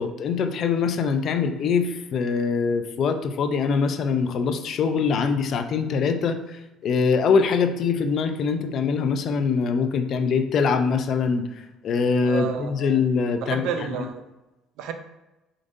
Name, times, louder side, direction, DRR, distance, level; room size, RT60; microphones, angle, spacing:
voice 1, 0.0-13.6, left 5 dB, 50° left, 0.5 m, -23 dB
voice 2, 12.2-12.9 13.4-14.2 14.8-14.9, right 7 dB, 80° right, 0.5 m, -30 dB
4.8 x 3.8 x 2.6 m
cardioid pair, 140°, 0 cm